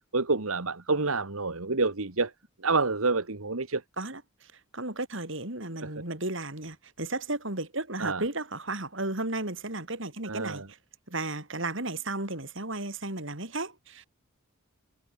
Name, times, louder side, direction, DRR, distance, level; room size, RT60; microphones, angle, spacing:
voice 1, 0.1-2.3 2.6-3.8 5.8-5.9 8.0-8.2 10.2-10.7, right 3 dB, 75° right, 1.7 m, -28 dB
voice 2, 4.7-10.6 11.1-14.1, right 2 dB, 60° right, 4.5 m, -34 dB
head